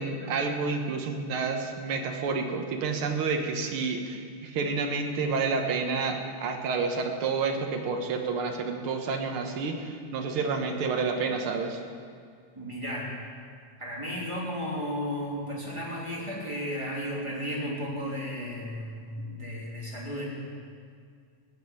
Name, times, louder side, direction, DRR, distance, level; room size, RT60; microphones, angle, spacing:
voice 1, 0.0-11.8, right 4 dB, 55° right, 3 dB, 1.6 m, -29 dB
voice 2, 12.5-13.1 13.8-20.2, equal, 10° right, -5 dB, 2.7 m, -34 dB
15.5 x 7.8 x 9.6 m, 2.1 s
omnidirectional pair, 3.7 m